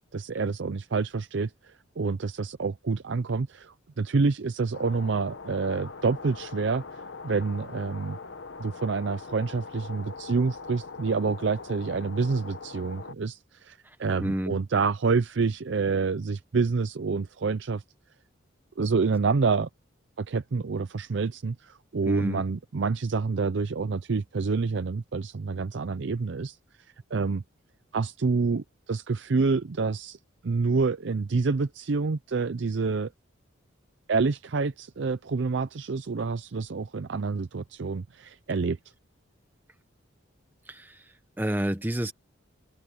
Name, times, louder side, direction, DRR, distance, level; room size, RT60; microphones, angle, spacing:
voice 1, 0.1-8.2 8.6-17.8 18.8-19.7 20.2-26.6 27.1-27.4 27.9-30.2 30.4-33.1 34.1-38.8, right 4 dB, 60° right, 0.5 m, -28 dB
sound 1, 4.7-13.1, left 4 dB, 60° left, 1.0 m, -42 dB
voice 2, 13.8-14.6 22.1-22.4 40.7-42.1, equal, 10° right, 0.8 m, -30 dB
head